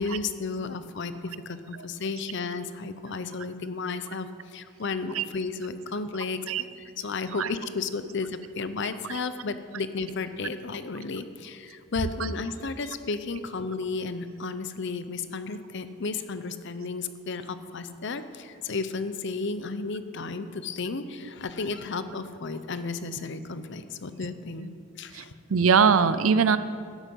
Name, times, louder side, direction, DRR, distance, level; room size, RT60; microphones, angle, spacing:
voice 1, 0.0-6.7 7.0-25.4, left 4 dB, 60° left, 11 dB, 0.7 m, -33 dB
voice 2, 25.5-26.6, right 6 dB, 85° right, 14 dB, 0.6 m, -20 dB
12.0 x 9.9 x 5.5 m, 2.2 s
head